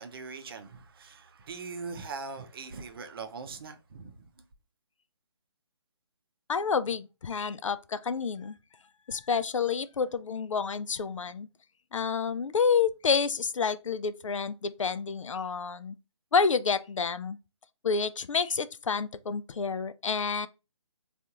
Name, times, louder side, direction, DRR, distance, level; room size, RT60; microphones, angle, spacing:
voice 1, 0.0-4.3, right 4 dB, 50° right, 0.6 m, -41 dB
voice 2, 6.5-8.6 9.1-11.5 11.9-16.0 16.3-17.4 17.8-20.5, left 5 dB, 80° left, 0.4 m, -29 dB
3.5 x 2.5 x 2.8 m
figure-of-eight pair, 150°, 16 cm